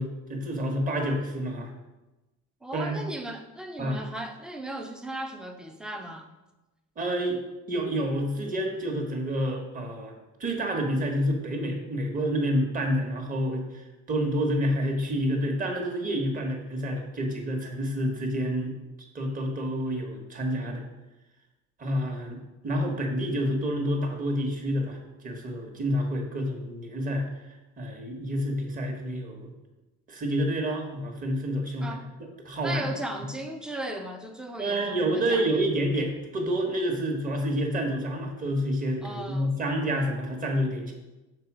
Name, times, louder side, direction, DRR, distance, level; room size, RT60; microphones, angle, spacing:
voice 1, 0.0-1.7 2.7-3.0 3.8-4.0 7.0-7.4 7.7-10.1 10.4-13.8 14.1-18.8 19.1-20.8 21.8-25.0 25.2-27.3 27.8-29.5 30.1-32.0 32.4-32.8 34.6-40.9, equal, 30° right, 2 dB, 1.4 m, -28 dB
voice 2, 2.6-6.3 31.8-32.1 32.6-35.7 39.0-39.5, right 1 dB, 5° right, 5 dB, 0.6 m, -37 dB
6.7 x 4.0 x 6.1 m, 1.1 s
cardioid pair, 135°, 30 cm